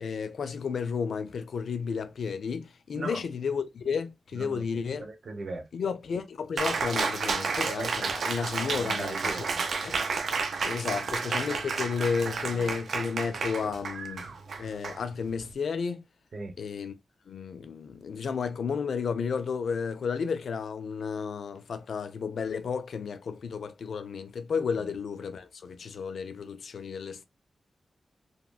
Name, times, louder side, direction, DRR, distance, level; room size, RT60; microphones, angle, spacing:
voice 1, 0.0-5.0 5.7-9.5 9.8-10.0 10.6-14.3 14.6-16.0 16.6-16.9 17.3-27.2, left 6 dB, 80° left, 0.4 m, -32 dB
voice 2, 5.0-5.6 8.0-8.1 8.8-9.6 16.3-16.5 24.8-24.9, right 3 dB, 60° right, 1.0 m, -38 dB
Cheering, 6.6-15.5, right 4 dB, 80° right, 0.5 m, -31 dB
2.9 x 2.9 x 2.2 m
wide cardioid pair, 105°, 0 cm